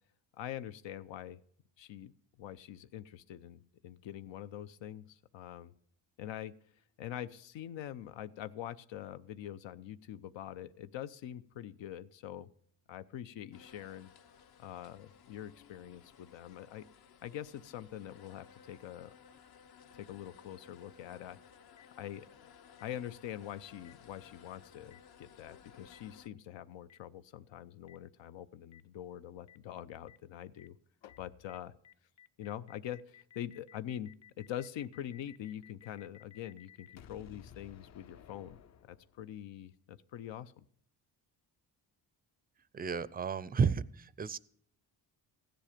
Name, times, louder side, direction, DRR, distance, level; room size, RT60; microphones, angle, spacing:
voice 1, 0.3-1.4 1.8-2.1 2.4-5.7 6.2-6.5 7.0-12.5 12.9-14.1 14.6-16.8 17.2-19.1 19.9-21.4 22.0-22.5 22.8-30.8 31.0-31.7 32.4-34.1 34.4-38.6 38.9-40.6, left 11 dB, 85° left, 12 dB, 0.7 m, -44 dB
sound 1, 13.5-26.3, left 7 dB, 55° left, 0.9 m, -59 dB
Boom, 21.8-21.9 22.8-22.9 23.8-23.9 24.9-25.0 25.9-26.0 26.9-27.0 27.9-28.0 28.7-28.8 29.5-29.6 30.1-30.2 30.6-30.7 31.1-31.2 31.5-31.6 31.8-39.4, left 9 dB, 40° left, 0.5 m, -57 dB
voice 2, 42.7-44.4, right 5 dB, 20° right, 18 dB, 0.4 m, -32 dB
15.5 x 10.5 x 5.0 m, 0.64 s
cardioid pair, 130°, 44 cm